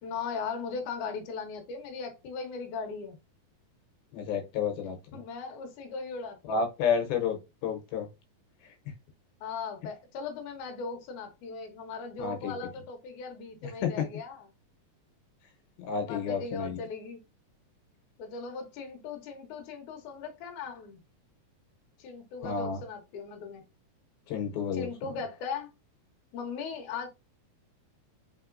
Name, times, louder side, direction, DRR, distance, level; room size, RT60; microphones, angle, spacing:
voice 1, 0.0-3.2 5.1-6.7 9.4-14.5 16.0-17.2 18.2-21.0 22.0-23.6 24.7-25.7 26.3-27.1, left 5 dB, 65° left, 2.5 m, -38 dB
voice 2, 4.1-5.2 6.5-8.1 12.2-12.5 13.6-14.1 15.8-16.8 22.4-22.8 24.3-24.9, left 6 dB, 80° left, 2.8 m, -31 dB
5.4 x 3.6 x 2.6 m
omnidirectional pair, 4.3 m